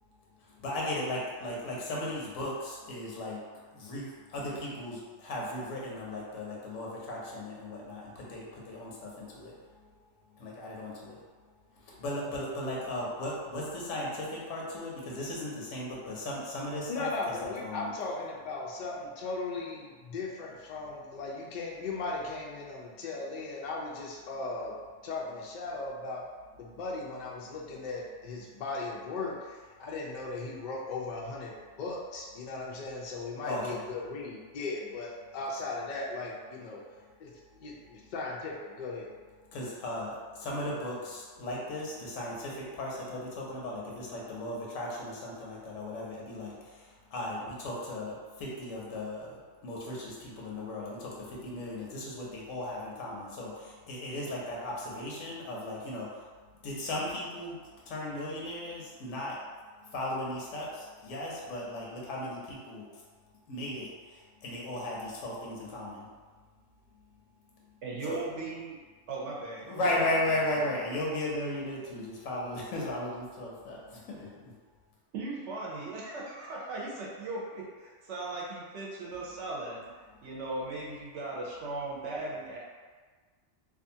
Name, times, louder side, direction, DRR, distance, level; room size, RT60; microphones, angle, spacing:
voice 1, 0.4-3.4 3.7-9.6 9.8-9.9 10.3-11.2 11.7-17.9 33.4-33.8 39.5-56.3 56.6-57.6 57.9-59.4 59.8-63.0 63.5-66.1 68.0-68.2 69.7-74.5, left 1 dB, 90° left, -4 dB, 1.0 m, -36 dB
voice 2, 16.9-24.8 25.0-26.2 26.5-31.5 31.8-36.8 37.2-37.3 37.6-39.1, left 3 dB, 75° left, -3 dB, 0.4 m, -37 dB
voice 3, 67.8-68.8 69.1-69.9 70.3-70.7 75.1-82.6, right 2 dB, 70° right, -4 dB, 0.8 m, -38 dB
2.6 x 2.4 x 2.6 m, 1.4 s
omnidirectional pair, 1.3 m